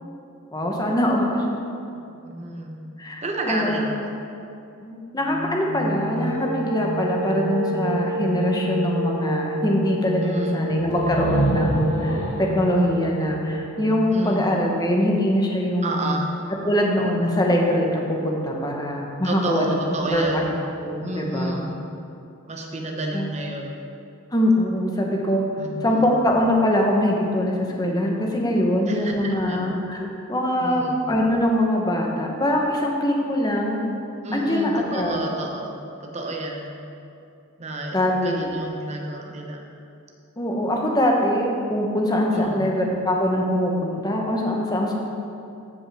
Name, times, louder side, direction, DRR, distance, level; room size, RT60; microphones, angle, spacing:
voice 1, 0.5-1.4 3.0-3.2 3.5-3.9 4.8-16.1 16.6-19.7 20.1-20.4 20.8-21.6 23.1-23.3 24.3-25.4 25.8-33.9 34.3-35.2 37.9-38.5 40.4-45.0, left 1 dB, 20° left, -1 dB, 0.9 m, -23 dB
voice 2, 2.2-2.8 3.2-4.1 10.2-10.6 14.1-14.5 15.8-16.3 19.2-20.5 21.0-21.7 22.5-23.9 25.6-26.1 28.9-29.6 30.6-31.0 34.2-35.8 36.0-36.8 37.6-39.6 42.3-42.6, right 2 dB, 30° right, 1 dB, 0.9 m, -30 dB
sound 1, 5.2-14.1, right 1 dB, 60° right, 1.0 m, -29 dB
sound 2, 10.9-14.6, right 1 dB, 85° left, 1.3 m, -28 dB
14.5 x 5.2 x 3.4 m, 2.6 s
head